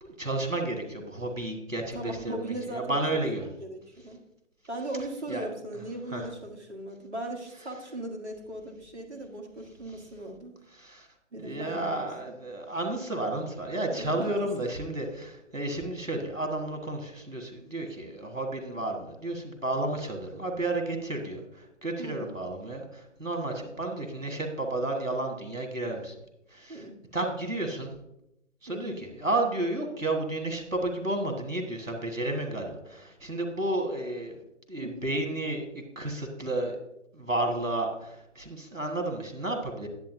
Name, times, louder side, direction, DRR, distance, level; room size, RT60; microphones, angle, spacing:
voice 1, 0.0-3.4 5.3-5.5 6.1-6.2 10.8-11.1 11.4-26.1 26.5-26.8 27.1-27.9 28.6-34.4 34.7-35.6 36.0-36.8 37.1-39.9, right 2 dB, 90° right, 2 dB, 1.9 m, -32 dB
voice 2, 1.9-4.2 4.7-10.6 11.3-12.4 13.9-14.5 22.0-22.3 26.7-27.0 28.7-29.1 34.8-35.0, right 1 dB, 60° right, 3 dB, 1.6 m, -38 dB
10.5 x 7.7 x 2.7 m, 0.83 s
figure-of-eight pair, 145°, 38 cm